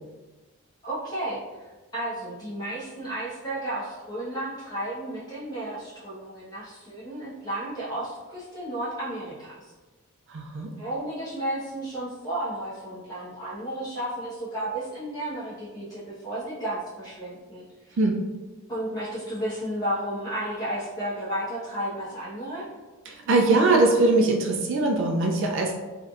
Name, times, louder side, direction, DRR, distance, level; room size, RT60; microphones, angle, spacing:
voice 1, 0.8-1.4 1.9-9.6 10.8-18.0 18.7-22.7, right 1 dB, 20° left, -9 dB, 1.0 m, -33 dB
voice 2, 10.3-10.7 18.0-18.2 23.1-25.7, right 2 dB, 55° right, 1 dB, 0.4 m, -21 dB
3.3 x 2.7 x 2.4 m, 1.2 s
head